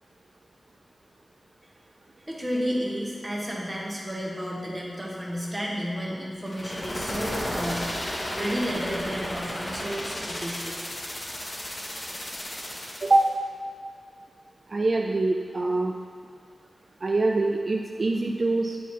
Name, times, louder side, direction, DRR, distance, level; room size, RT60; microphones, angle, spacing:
voice 1, 2.3-7.9 8.3-10.7, equal, 15° right, -4 dB, 1.4 m, -31 dB
sound 1, 6.5-13.3, left 1 dB, 35° left, 1.2 m, -34 dB
voice 2, 14.7-15.9 17.0-18.8, right 2 dB, 50° right, 1 dB, 0.3 m, -24 dB
9.1 x 4.0 x 4.5 m, 2.1 s
wide cardioid pair, 100°, 0 cm